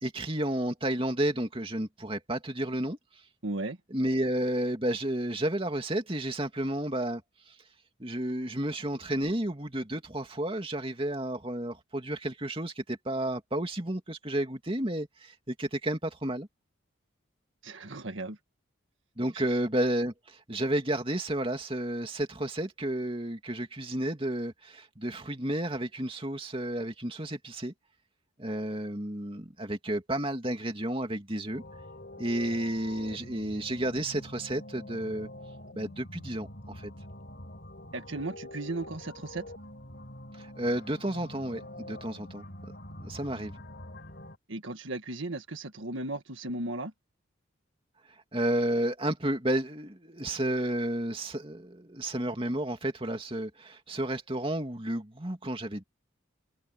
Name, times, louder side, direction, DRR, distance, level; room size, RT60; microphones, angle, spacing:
voice 1, 0.0-3.0 3.9-7.2 7.5-7.6 8.0-16.5 19.2-27.7 28.4-31.6 32.2-35.3 35.7-36.9 40.4-42.4 43.0-43.5 48.3-55.8, right 1 dB, 25° right, 2.7 m, -31 dB
voice 2, 3.4-3.8 17.6-18.4 19.3-19.4 37.9-39.4 44.5-46.9, right 2 dB, 70° right, 1.7 m, -36 dB
sound 1, 31.5-44.4, left 1 dB, 55° left, 4.2 m, -46 dB
head